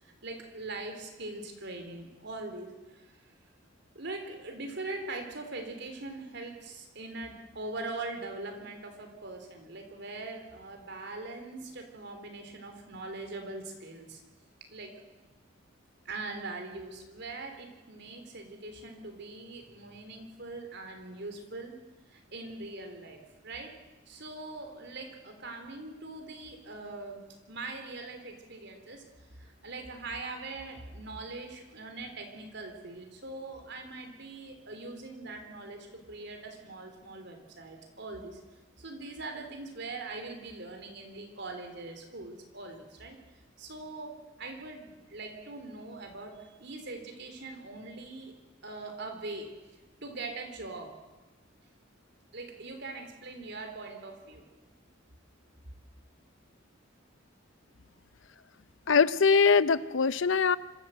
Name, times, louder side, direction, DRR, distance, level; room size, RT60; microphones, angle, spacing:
voice 1, 0.2-3.1 3.9-14.2 14.7-14.9 16.1-21.7 22.1-23.8 24.1-27.2 27.5-29.1 29.4-38.4 38.8-43.2 43.6-48.3 48.6-49.5 50.0-51.0 52.3-54.4, right 2 dB, 60° right, 4 dB, 3.8 m, -42 dB
voice 2, 58.9-60.6, left 5 dB, 70° left, 16 dB, 0.7 m, -22 dB
25.5 x 14.0 x 7.9 m, 1.2 s
head